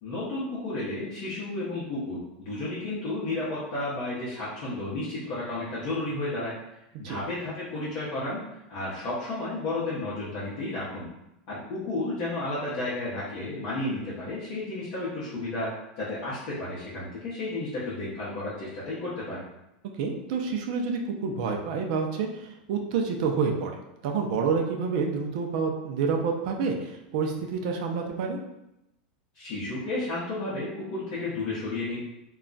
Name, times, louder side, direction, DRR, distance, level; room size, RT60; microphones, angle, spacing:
voice 1, 0.0-6.5 7.0-8.4 8.7-11.0 11.5-19.4 29.3-32.0, left 2 dB, 40° left, -8 dB, 0.7 m, -32 dB
voice 2, 20.0-23.8 24.0-28.4, right 5 dB, 45° right, 2 dB, 0.4 m, -28 dB
2.3 x 2.1 x 3.8 m, 0.89 s
supercardioid pair, 170°, 5 cm